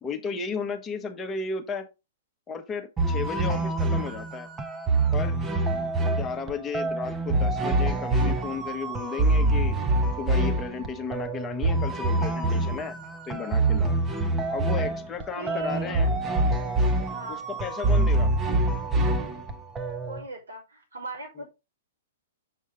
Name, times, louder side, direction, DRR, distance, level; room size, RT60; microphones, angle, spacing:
voice 1, 0.0-1.9 2.5-4.5 5.1-5.4 6.0-9.8 10.2-12.9 13.2-14.0 14.5-16.1 17.3-18.3, left 5 dB, 20° left, 1.3 m, -34 dB
sound 1, 3.0-20.2, right 2 dB, 20° right, 1.2 m, -25 dB
voice 2, 15.4-16.3 17.1-17.4 20.1-21.5, right 2 dB, 85° right, 3.2 m, -39 dB
6.9 x 6.3 x 3.5 m
figure-of-eight pair, 110°, 0 cm